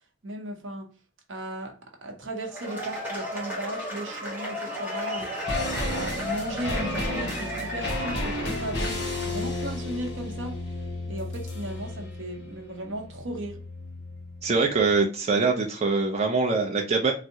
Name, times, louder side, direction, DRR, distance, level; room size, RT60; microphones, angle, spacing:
voice 1, 0.2-0.9 1.3-5.4 5.8-10.6 11.0-13.6, right 1 dB, 75° right, 0.8 m, -36 dB
Cheering / Applause / Crowd, 2.4-9.3, left 1 dB, 10° right, 0.8 m, -34 dB
sound 1, 5.2-14.6 14.8-14.9, left 1 dB, 55° left, 1.1 m, -33 dB
voice 2, 14.4-17.1, right 4 dB, 35° right, 0.4 m, -23 dB
3.5 x 2.0 x 2.7 m
head